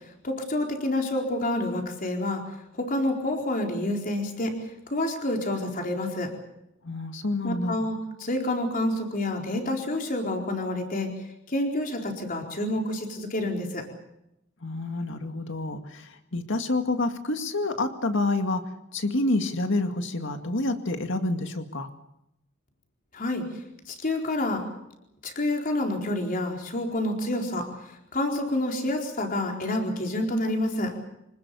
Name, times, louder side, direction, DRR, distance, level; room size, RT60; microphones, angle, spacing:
voice 1, 0.2-2.4 2.7-4.6 4.9-6.3 7.4-11.1 11.5-13.8 23.1-23.5 23.9-24.6 25.2-27.7 28.1-30.9, left 1 dB, 45° left, 2 dB, 4.4 m, -28 dB
voice 2, 6.8-7.7 14.6-18.6 18.9-21.9, left 2 dB, 65° left, 6 dB, 2.2 m, -28 dB
26.0 x 19.5 x 7.0 m, 0.84 s
head